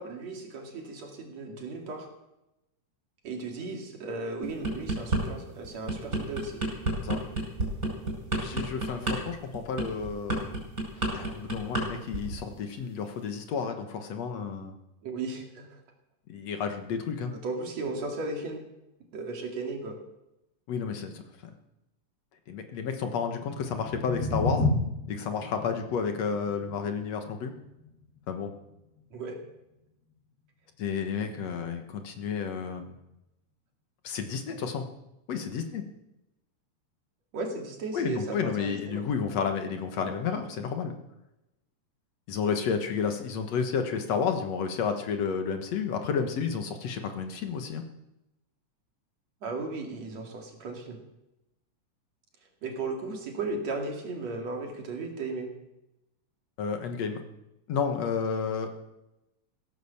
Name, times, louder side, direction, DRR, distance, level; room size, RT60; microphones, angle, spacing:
voice 1, 0.0-2.1 3.2-6.6 15.0-15.8 17.3-18.6 19.1-20.0 29.1-29.4 37.3-39.0 49.4-51.0 52.6-55.5, right 3 dB, 65° right, 1 dB, 3.7 m, -35 dB
sound 1, 4.4-5.2 5.6-11.9 12.1-12.4, right 2 dB, 25° right, 5.6 m, -29 dB
voice 2, 8.4-10.5 11.1-14.7 16.3-17.3 20.7-21.2 22.5-24.7 25.1-27.5 28.3-28.5 30.8-33.0 34.0-34.9 35.3-35.8 37.9-40.9 42.3-47.8 56.6-57.2 57.7-58.7, left 6 dB, 65° left, 6 dB, 2.5 m, -31 dB
sound 2, 23.5-29.5, left 2 dB, 5° right, 3.9 m, -33 dB
16.5 x 10.5 x 7.1 m, 0.91 s
omnidirectional pair, 3.3 m